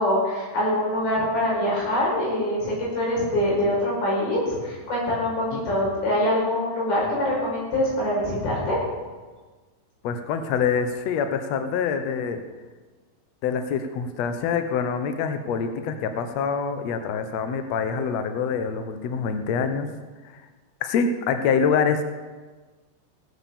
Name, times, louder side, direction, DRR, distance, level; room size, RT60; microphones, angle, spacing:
voice 1, 0.0-8.8, left 1 dB, 85° left, -5 dB, 7.2 m, -24 dB
voice 2, 10.0-12.4 13.4-19.9 20.8-22.0, left 6 dB, 70° left, 8 dB, 1.6 m, -25 dB
17.5 x 7.9 x 7.2 m, 1.4 s
omnidirectional pair, 4.2 m